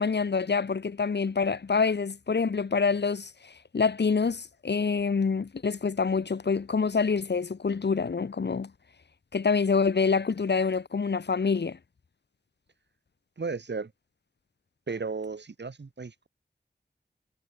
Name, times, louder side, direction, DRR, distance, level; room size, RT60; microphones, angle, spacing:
voice 1, 0.0-8.7 9.3-11.8, left 5 dB, 80° left, 1.0 m, -26 dB
voice 2, 13.4-13.9 14.9-16.3, right 4 dB, 85° right, 2.3 m, -34 dB
wide cardioid pair, 40°, 17 cm